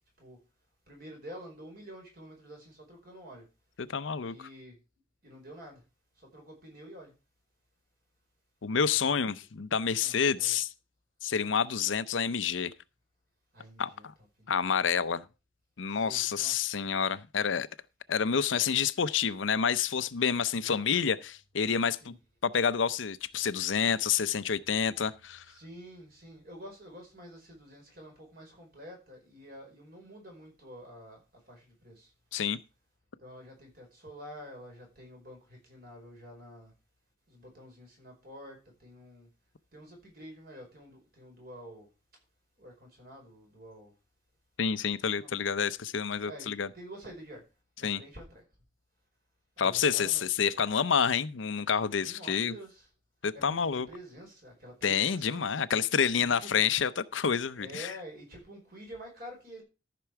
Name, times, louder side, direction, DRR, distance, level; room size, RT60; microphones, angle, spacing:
voice 1, 0.9-3.5 4.2-4.8 5.2-5.8 6.3-7.1 8.9-9.2 10.0-10.6 13.5-14.0 14.4-14.5 15.9-16.7 20.3-20.8 22.0-22.2 25.4-31.2 31.5-32.1 33.2-36.7 37.3-39.3 39.7-41.9 42.6-43.9 45.0-45.4 46.2-47.4 47.8-48.4 49.6-50.3 52.0-52.9 53.3-55.5 56.4-56.7 57.6-59.6, equal, 50° right, 4.9 m, -48 dB
voice 2, 3.8-4.3 8.6-10.7 11.2-12.7 13.8-14.1 14.5-15.2 15.8-17.7 18.1-22.1 22.4-25.4 32.3-32.6 44.6-46.7 47.8-48.0 49.6-52.5 53.2-53.9 54.8-57.9, left 7 dB, 85° left, 0.6 m, -28 dB
13.5 x 6.0 x 4.7 m
head